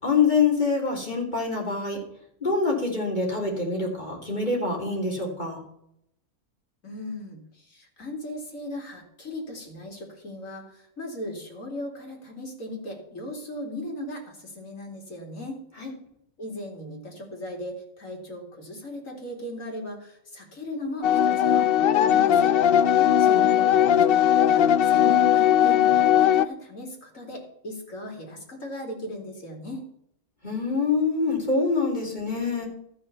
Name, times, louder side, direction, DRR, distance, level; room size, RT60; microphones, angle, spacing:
voice 1, 0.0-2.0 2.4-5.6 15.8-15.9 23.0-23.4 30.4-32.7, left 4 dB, 30° left, -1 dB, 3.3 m, -25 dB
voice 2, 6.8-15.6 16.4-22.5 23.2-29.8, left 1 dB, 60° left, 1 dB, 3.2 m, -37 dB
sound 1, 21.0-26.5, left 10 dB, 80° left, 0.5 m, -19 dB
13.0 x 6.0 x 6.8 m, 0.74 s
omnidirectional pair, 1.6 m